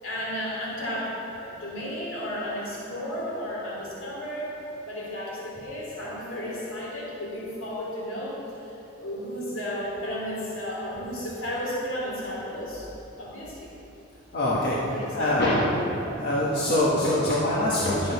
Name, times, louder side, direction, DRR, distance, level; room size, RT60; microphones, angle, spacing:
voice 1, 0.0-4.5 4.8-8.4 8.7-12.9 13.2-13.7 14.8-15.8 16.0-16.2 17.8-17.9, equal, 85° left, -5 dB, 2.8 m, -33 dB
voice 2, 14.3-15.7 16.2-18.1, left 1 dB, 55° left, -7 dB, 1.5 m, -24 dB
12.0 x 7.7 x 5.9 m, 2.9 s
head